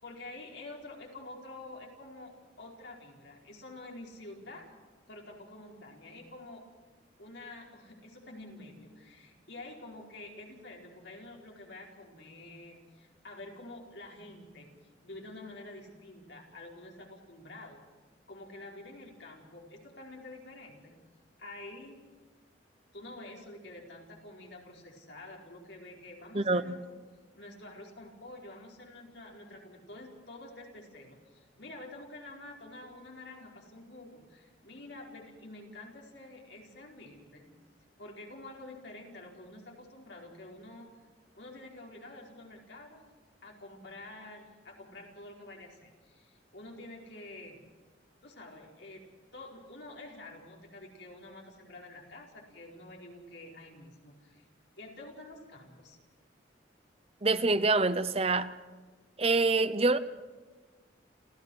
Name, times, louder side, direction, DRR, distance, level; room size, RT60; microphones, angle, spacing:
voice 1, 0.0-4.7 5.1-6.6 7.2-14.7 15.0-17.8 18.3-20.9 21.4-22.0 22.9-27.0 27.3-37.4 38.0-40.9 41.3-43.0 43.4-47.6 48.2-49.0 49.3-54.5 54.8-56.0, left 2 dB, 70° left, 4.6 m, -48 dB
voice 2, 26.3-26.8 57.2-58.5 59.2-60.0, right 3 dB, 30° right, 0.8 m, -26 dB
28.5 x 14.5 x 6.4 m
head